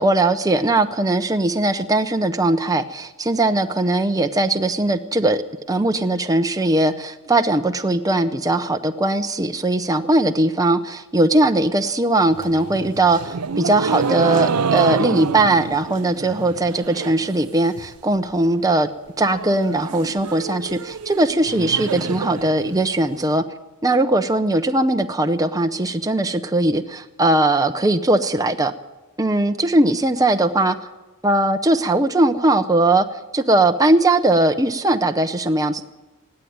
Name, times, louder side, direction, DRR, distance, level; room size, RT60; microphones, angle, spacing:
voice 1, 0.0-5.4 5.7-18.9 19.2-23.4 23.8-28.7 29.2-30.8 31.2-33.1 33.3-35.8, right 2 dB, 15° right, 6 dB, 0.7 m, -19 dB
sound 1, 12.3-17.3 17.6-18.1 18.5-18.6 18.8-18.9 19.2-23.2, right 5 dB, 90° right, 0.6 m, -27 dB
19.0 x 15.5 x 9.4 m, 1.1 s
head